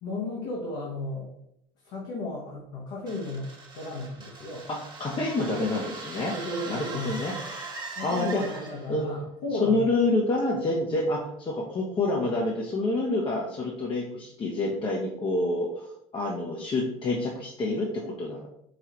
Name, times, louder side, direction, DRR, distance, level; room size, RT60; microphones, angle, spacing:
voice 1, 0.0-1.3 1.8-3.5 3.7-4.7 6.2-7.2 7.9-9.8, left 2 dB, 65° left, -4 dB, 1.1 m, -34 dB
sound 1, 3.1-9.0, right 3 dB, 25° right, 1.1 m, -41 dB
sound 2, 4.5-8.8, right 4 dB, 75° right, 1.1 m, -48 dB
voice 2, 4.7-6.3 6.7-7.3 7.6-7.7 8.0-8.6 8.9-9.2 9.6-18.5, left 2 dB, 30° left, -2 dB, 0.8 m, -28 dB
4.8 x 2.3 x 3.0 m, 0.76 s
hypercardioid pair, 85°, 18 cm